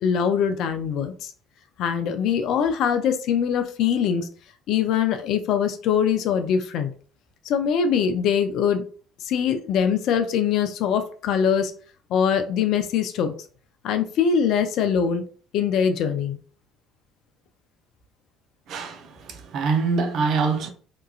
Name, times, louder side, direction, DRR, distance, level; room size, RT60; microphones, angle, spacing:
voice 1, 0.0-1.3 1.8-4.3 4.7-6.9 7.5-8.8 9.3-11.7 12.1-13.3 13.8-15.2 15.5-16.4, left 7 dB, 60° left, 0.4 m, -22 dB
voice 2, 18.7-20.7, right 4 dB, 55° right, 0.5 m, -25 dB
2.9 x 2.3 x 2.3 m
hypercardioid pair, 55°, 0 cm